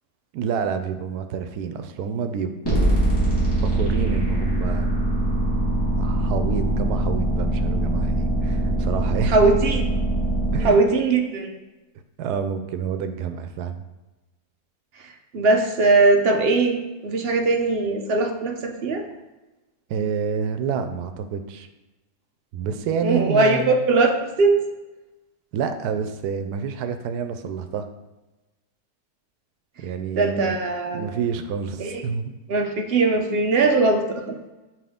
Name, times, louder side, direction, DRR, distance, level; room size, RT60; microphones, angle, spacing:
voice 1, 0.3-3.0 3.6-4.9 6.0-9.5 10.5-10.8 12.2-13.8 19.9-21.7 22.5-23.8 25.5-27.9 29.8-30.6 30.9-32.3, right 6 dB, 90° right, 9 dB, 1.1 m, -28 dB
sound 1, 2.6-10.7, right 1 dB, 15° left, 1.7 m, -22 dB
voice 2, 9.3-9.9 10.6-11.5 15.3-16.8 17.0-19.1 23.0-24.6 30.2-31.1 31.8-32.0 32.5-34.3, right 3 dB, 55° right, 4 dB, 0.7 m, -20 dB
5.9 x 4.8 x 3.6 m, 1.1 s
omnidirectional pair, 1.6 m